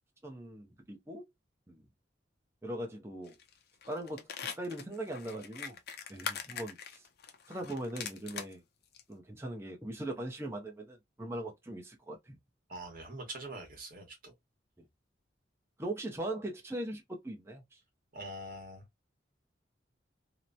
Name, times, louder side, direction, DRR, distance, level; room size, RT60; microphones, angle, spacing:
voice 1, 0.2-1.2 1.7-1.8 2.6-3.4 3.9-4.3 4.6-5.8 6.1-7.0 7.5-8.6 9.1-12.4 14.8-14.9 15.8-17.8, right 1 dB, 15° right, 0.6 m, -40 dB
sound 1, 3.3-3.5 3.8-8.5 8.9-9.0, left 7 dB, 55° left, 0.5 m, -42 dB
voice 2, 12.7-14.3 18.1-18.9, right 1 dB, 45° right, 1.2 m, -44 dB
2.9 x 2.1 x 2.4 m
head